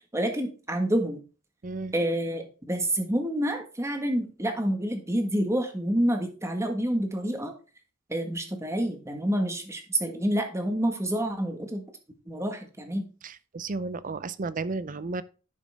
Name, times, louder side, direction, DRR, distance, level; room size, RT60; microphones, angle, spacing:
voice 1, 0.1-1.2 1.9-7.5 8.1-11.8 12.3-13.1, right 1 dB, 15° right, 1.6 m, -28 dB
voice 2, 1.6-1.9 13.2-15.2, right 3 dB, 40° right, 0.6 m, -33 dB
11.0 x 6.1 x 3.5 m
head